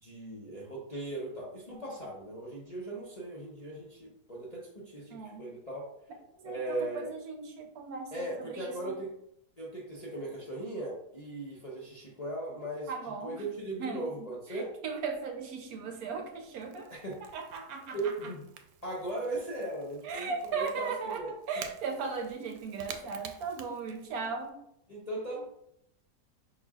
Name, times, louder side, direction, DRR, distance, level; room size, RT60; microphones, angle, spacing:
voice 1, 0.0-5.9 6.4-7.1 8.1-9.1 9.6-14.7 16.9-17.2 17.9-18.4 18.8-21.3 24.9-25.4, right 2 dB, 35° left, -5 dB, 0.6 m, -38 dB
voice 2, 5.1-5.5 6.4-9.0 12.9-13.4 13.8-16.9 17.2-18.3 20.0-24.6, right 5 dB, 70° right, 4 dB, 1.0 m, -38 dB
Crackle / Crack, 15.0-24.5, right 7 dB, 85° right, 1.2 m, -51 dB
5.3 x 4.1 x 2.4 m, 0.76 s
omnidirectional pair, 1.8 m